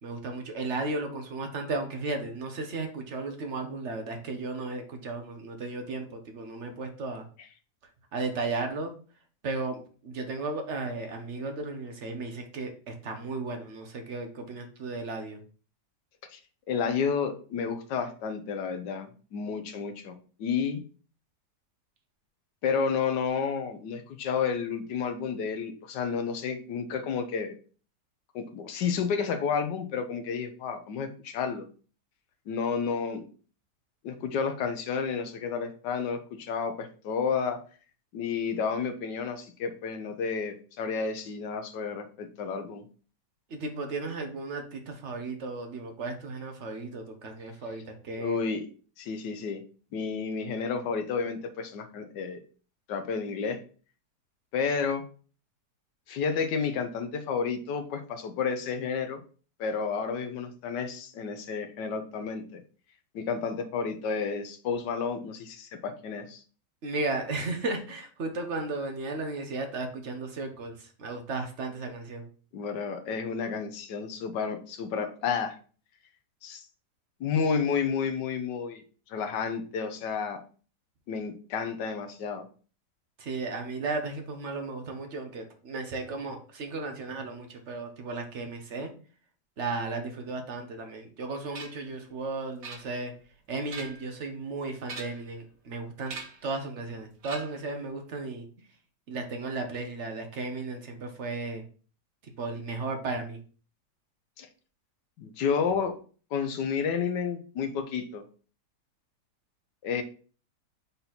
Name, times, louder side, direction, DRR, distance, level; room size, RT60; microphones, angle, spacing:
voice 1, 0.0-7.2 8.1-8.9 9.4-15.4 43.5-48.4 66.8-70.7 71.0-72.3 83.2-88.9 89.6-93.1 93.5-96.2 96.4-98.4 99.1-101.6 102.4-103.4, right 3 dB, 50° right, 5 dB, 1.2 m, -35 dB
voice 2, 16.7-20.8 22.6-27.6 28.3-31.6 32.5-33.2 34.0-37.6 38.1-42.8 48.2-48.7 49.0-49.6 49.9-52.4 52.9-53.6 54.5-55.0 56.1-59.2 59.6-62.6 63.1-66.4 72.5-75.6 76.4-76.6 77.2-78.8 79.1-80.4 81.1-82.5 104.4-104.5 105.2-105.9 106.3-108.2 109.8-110.0, left 6 dB, 85° left, 7 dB, 1.5 m, -31 dB
sound 1, 91.5-91.9 92.6-93.2 93.6-94.1 94.8-95.4 96.1-96.5 97.2-97.7, right 4 dB, 85° right, 2.0 m, -42 dB
5.4 x 4.1 x 4.3 m, 0.39 s
omnidirectional pair, 1.8 m